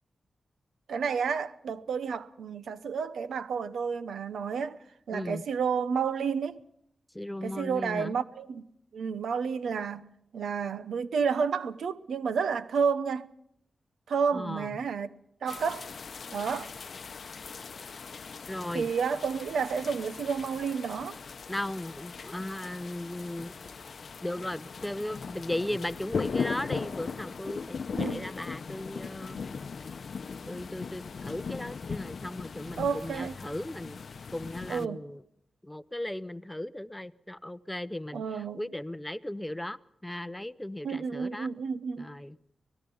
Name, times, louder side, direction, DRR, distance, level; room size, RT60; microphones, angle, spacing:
voice 1, 0.9-4.8 5.1-6.6 7.4-8.6 8.9-13.3 14.1-15.9 16.3-16.7 18.7-21.2 27.9-28.3 32.8-33.4 34.7-35.1 38.1-38.7 40.8-42.1, right 6 dB, 90° right, 0.9 m, -31 dB
voice 2, 5.1-5.4 7.1-8.1 14.3-14.8 18.5-18.9 21.5-23.6 24.2-29.4 30.5-34.0 34.3-35.2 35.6-41.5 42.0-42.4, left 1 dB, 10° left, 0.7 m, -37 dB
sound 1, 15.5-34.9, left 5 dB, 60° left, 0.7 m, -39 dB
25.0 x 18.5 x 5.5 m
cardioid pair, 80°, 0 cm